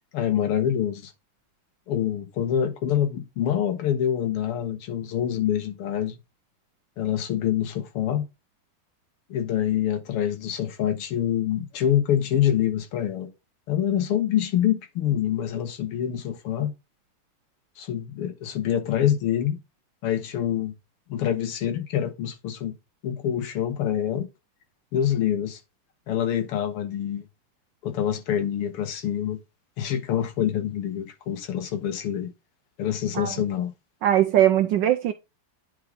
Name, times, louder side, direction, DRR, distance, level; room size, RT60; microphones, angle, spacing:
voice 1, 0.1-1.1 1.9-6.2 7.0-8.2 9.3-13.3 13.7-16.7 17.8-19.6 20.0-20.7 21.1-22.7 23.0-24.3 24.9-25.6 26.1-27.2 27.8-29.4 29.8-32.3 32.8-33.7, left 10 dB, 90° left, 2.0 m, -26 dB
voice 2, 34.0-35.1, right 12 dB, 75° right, 1.0 m, -20 dB
9.5 x 3.7 x 3.7 m
omnidirectional pair, 2.4 m